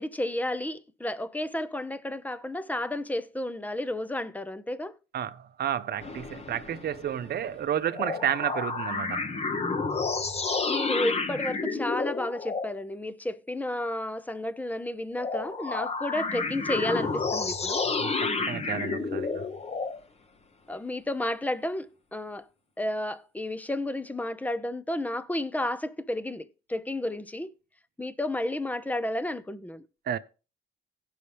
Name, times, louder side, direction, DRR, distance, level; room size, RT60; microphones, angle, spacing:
voice 1, 0.0-4.9 10.7-17.8 20.7-22.5 22.8-27.5 28.0-29.8, left 1 dB, 10° left, 0.7 m, -32 dB
voice 2, 5.1-9.3 18.0-19.4 30.1-30.2, right 9 dB, 55° right, 0.7 m, -31 dB
sound 1, 6.0-7.6 7.9-12.7 15.2-20.0, left 4 dB, 30° left, 1.0 m, -30 dB
16.5 x 5.6 x 3.4 m
cardioid pair, 90°, 20 cm